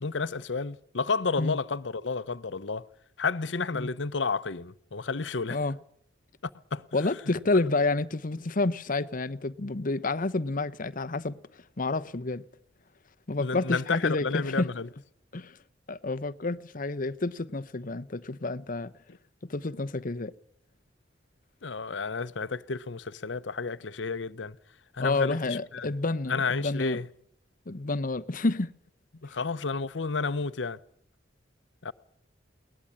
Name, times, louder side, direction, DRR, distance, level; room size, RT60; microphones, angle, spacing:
voice 1, 0.0-2.8 3.2-5.6 6.7-6.8 7.5-7.6 13.4-14.9 21.6-24.6 24.9-25.9 26.3-27.1 29.2-30.8 31.8-31.9, left 4 dB, 75° left, 0.9 m, -31 dB
voice 2, 6.9-11.4 11.8-12.4 13.3-14.7 15.3-15.6 15.9-18.9 19.5-20.3 25.0-27.0 27.7-28.7, left 2 dB, 45° left, 0.9 m, -29 dB
21.5 x 19.0 x 8.8 m
head